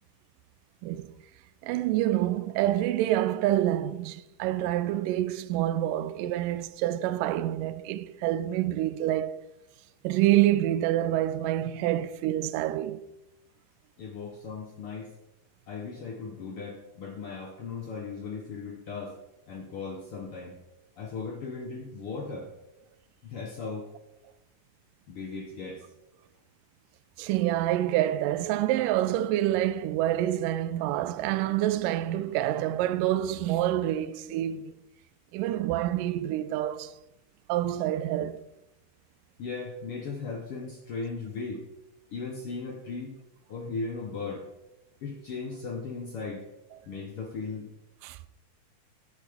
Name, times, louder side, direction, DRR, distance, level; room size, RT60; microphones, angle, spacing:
voice 1, 0.8-1.1 1.6-9.3 10.0-13.0 27.2-34.7 35.3-36.9 37.5-38.5 48.0-48.2, right 13 dB, 85° right, 2.2 m, -27 dB
voice 2, 14.0-15.1 15.7-19.2 19.5-20.6 21.0-22.5 23.2-23.9 25.1-25.8 39.4-41.7 42.1-43.2 43.5-44.5 45.0-46.5 46.9-47.7, left 4 dB, 65° left, 1.4 m, -37 dB
12.0 x 8.7 x 3.5 m
omnidirectional pair, 3.8 m